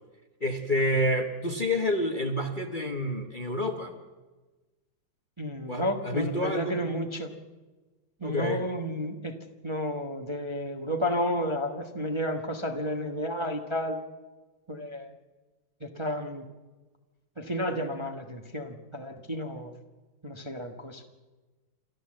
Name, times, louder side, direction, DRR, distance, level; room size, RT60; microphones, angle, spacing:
voice 1, 0.4-3.9 5.7-6.8 8.2-8.6, left 1 dB, 30° left, 4 dB, 1.1 m, -28 dB
voice 2, 5.4-7.3 8.2-9.4 9.6-14.0 14.7-15.1 15.8-16.4 17.4-19.7 20.2-21.0, equal, 20° right, 3 dB, 1.0 m, -32 dB
28.0 x 12.5 x 7.6 m, 1.2 s
omnidirectional pair, 2.2 m